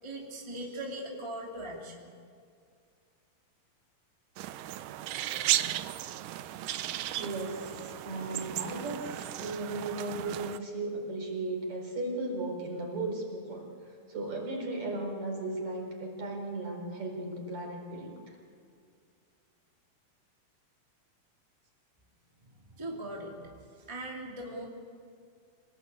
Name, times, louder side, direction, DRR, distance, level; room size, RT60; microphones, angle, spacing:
voice 1, 0.0-2.1 22.5-23.5 23.9-24.6, right 1 dB, 10° right, -2 dB, 2.2 m, -40 dB
sound 1, 4.4-10.6, right 13 dB, 75° right, 2.2 m, -35 dB
voice 2, 7.2-18.4, right 2 dB, 50° right, 1 dB, 5.7 m, -36 dB
27.0 x 19.5 x 8.5 m, 2.3 s
omnidirectional pair, 4.2 m